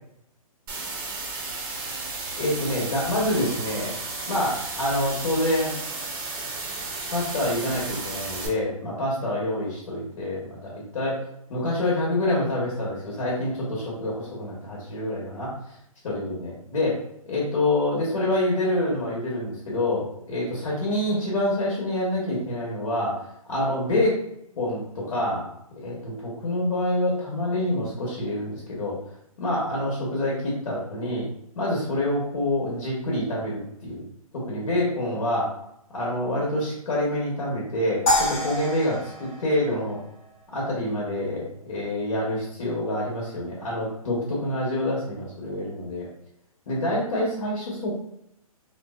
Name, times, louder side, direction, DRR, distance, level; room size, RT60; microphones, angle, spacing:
sound 1, 0.7-8.5, right 3 dB, 40° right, 0.6 m, -33 dB
voice 1, 2.4-3.9 4.3-5.7 7.1-11.2 11.5-15.5 16.0-17.0 17.3-23.1 23.5-24.2 24.6-25.4 25.8-29.0 29.4-31.3 31.5-34.0 34.3-35.5 35.9-40.0 40.5-46.1 46.7-47.9, left 1 dB, 65° left, -4 dB, 1.0 m, -26 dB
sound 2, 38.1-40.4, left 1 dB, 20° left, 0.7 m, -27 dB
2.7 x 2.0 x 2.2 m, 0.76 s
hypercardioid pair, 145°, 19 cm